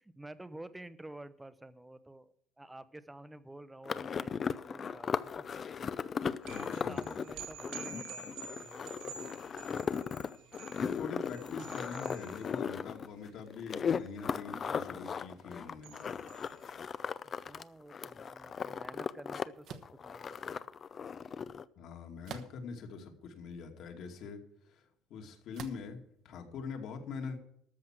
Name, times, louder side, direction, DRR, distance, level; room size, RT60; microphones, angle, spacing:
voice 1, 0.0-2.3 2.6-5.5 6.5-8.9 9.8-9.9 17.2-20.7, right 1 dB, 10° right, 14 dB, 0.7 m, -50 dB
sound 1, 3.9-17.6 17.9-19.4 19.7-21.6, left 6 dB, 35° left, 0.5 m, -37 dB
sound 2, 6.4-17.1, right 7 dB, 80° right, 2.4 m, -50 dB
voice 2, 6.5-7.0 10.8-16.1 21.8-24.8 25.1-27.4, left 5 dB, 60° left, 3 dB, 2.4 m, -44 dB
sound 3, 19.6-20.0 22.2-22.8 23.5-23.6 25.5-25.9, right 7 dB, 55° right, 1.1 m, -46 dB
13.5 x 6.3 x 7.5 m, 0.69 s
cardioid pair, 135°, 0 cm